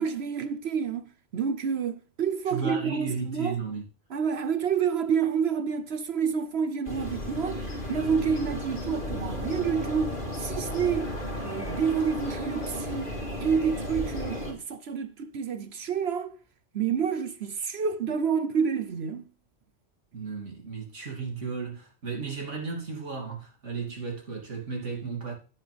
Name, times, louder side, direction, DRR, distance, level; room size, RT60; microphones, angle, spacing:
voice 1, 0.0-3.6 4.1-11.1 11.4-13.1 13.4-16.3 16.7-19.2, right 6 dB, 65° right, 1.0 m, -28 dB
voice 2, 2.5-3.8 20.1-25.3, right 5 dB, 85° right, 3.2 m, -34 dB
sound 1, 6.8-14.5, left 1 dB, 45° left, 4.1 m, -34 dB
10.0 x 9.7 x 3.4 m
omnidirectional pair, 1.2 m